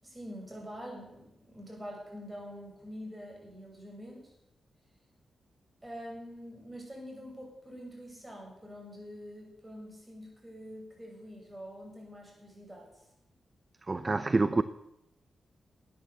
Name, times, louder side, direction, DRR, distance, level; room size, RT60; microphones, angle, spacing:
voice 1, 0.0-4.3 5.8-13.0, equal, 15° right, 7.0 m, -45 dB
voice 2, 13.9-14.6, right 3 dB, 35° right, 0.6 m, -27 dB
13.0 x 9.5 x 7.0 m
cardioid pair, 55°, 0 cm